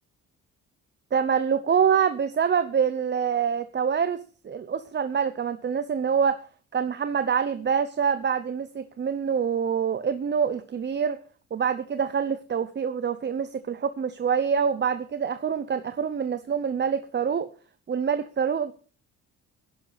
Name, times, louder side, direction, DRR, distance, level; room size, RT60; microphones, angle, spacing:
voice 1, 1.1-6.4 6.7-11.2 11.5-17.5 17.9-18.7, right 7 dB, 35° right, 12 dB, 0.8 m, -26 dB
16.0 x 11.0 x 4.1 m, 0.39 s
cardioid pair, 90°, 30 cm